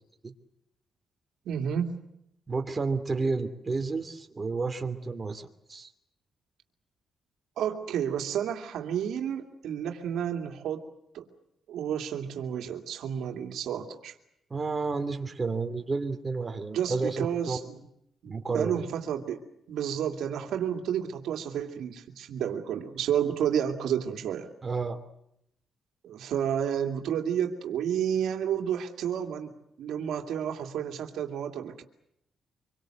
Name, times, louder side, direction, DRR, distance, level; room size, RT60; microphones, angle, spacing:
voice 1, 1.5-1.9 7.6-10.8 11.1-11.3 11.7-14.1 16.7-17.8 18.2-19.4 19.7-24.5 26.0-31.8, right 9 dB, 85° right, 4 dB, 2.5 m, -31 dB
voice 2, 2.5-5.9 14.5-17.6 18.2-18.8 24.6-25.0, right 4 dB, 30° right, 6 dB, 2.9 m, -31 dB
26.0 x 23.0 x 7.8 m, 0.78 s
cardioid pair, 100°, 0 cm